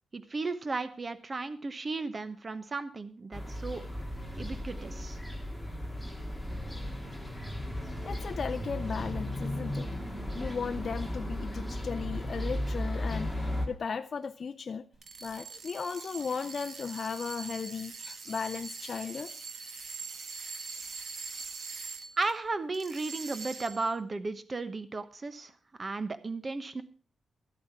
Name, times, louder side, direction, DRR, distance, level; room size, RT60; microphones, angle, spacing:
voice 1, 0.1-3.8 4.4-5.2 22.2-25.5 25.8-26.8, right 3 dB, 30° right, 12 dB, 1.0 m, -35 dB
sound 1, 3.3-13.7, left 1 dB, 5° right, 2.1 m, -35 dB
voice 2, 8.0-9.9 10.3-14.9 15.2-19.3, left 5 dB, 40° left, 9 dB, 0.5 m, -36 dB
sound 2, 14.9-22.3 22.7-23.9, right 4 dB, 50° right, 2.0 m, -43 dB
12.5 x 8.6 x 5.8 m, 0.41 s
wide cardioid pair, 140°, 0 cm